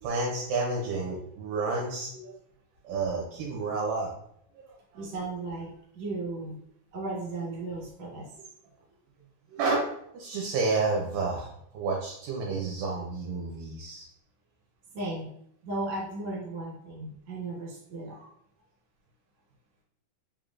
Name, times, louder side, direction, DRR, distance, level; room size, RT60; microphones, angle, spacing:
voice 1, 0.0-2.4 2.8-4.1 4.6-5.1 9.5-14.1, right 3 dB, 75° right, -1 dB, 2.1 m, -30 dB
voice 2, 4.9-6.6 6.9-8.3 14.9-15.3 15.6-18.3, right 2 dB, 55° right, -3 dB, 2.4 m, -35 dB
5.5 x 3.5 x 2.4 m, 0.71 s
omnidirectional pair, 4.3 m